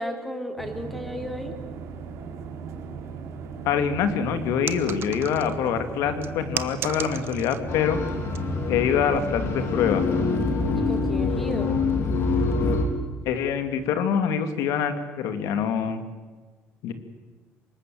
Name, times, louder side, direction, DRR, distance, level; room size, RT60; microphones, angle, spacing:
voice 1, 0.0-1.5 10.7-11.8, equal, ahead, 6 dB, 3.4 m, -33 dB
sound 1, 0.6-11.1, right 5 dB, 70° right, 4.0 m, -37 dB
voice 2, 3.6-8.0 8.7-10.0 13.2-16.0 16.8-16.9, left 7 dB, 80° left, 9 dB, 2.6 m, -25 dB
sound 2, 4.7-5.7 6.2-7.7 8.1-8.4 9.0-9.3, right 9 dB, 50° right, 1.2 m, -35 dB
sound 3, 7.7-12.9, left 4 dB, 55° left, 3.9 m, -25 dB
25.0 x 21.0 x 7.9 m, 1.4 s
cardioid pair, 125°, 5 cm